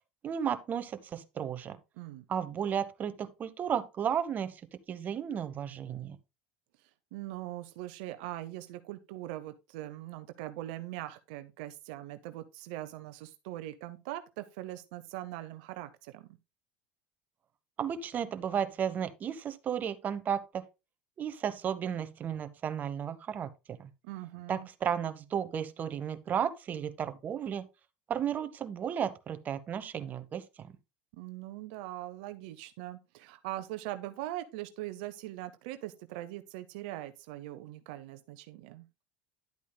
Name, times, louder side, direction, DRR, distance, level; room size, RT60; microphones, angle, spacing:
voice 1, 0.2-1.8 2.3-4.5 4.9-6.2 17.8-20.4 21.2-23.5 23.8-23.9 24.5-27.7 28.1-30.7, right 8 dB, 40° right, 0.9 m, -33 dB
voice 2, 2.0-2.3 7.1-16.3 24.0-24.7 31.1-38.8, right 15 dB, 75° right, 0.7 m, -41 dB
10.5 x 8.3 x 2.2 m
supercardioid pair, 95°, 5 cm